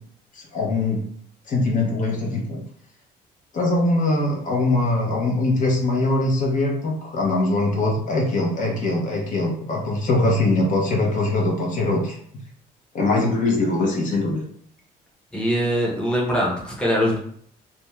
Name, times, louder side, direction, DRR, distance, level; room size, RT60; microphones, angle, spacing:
voice 1, 0.5-1.0 1.5-2.6 3.5-12.1 12.9-14.4, left 2 dB, 50° left, -1 dB, 0.8 m, -22 dB
voice 2, 15.3-17.2, equal, 5° left, -3 dB, 0.8 m, -22 dB
2.5 x 2.2 x 3.1 m, 0.63 s
cardioid pair, 110°, 17 cm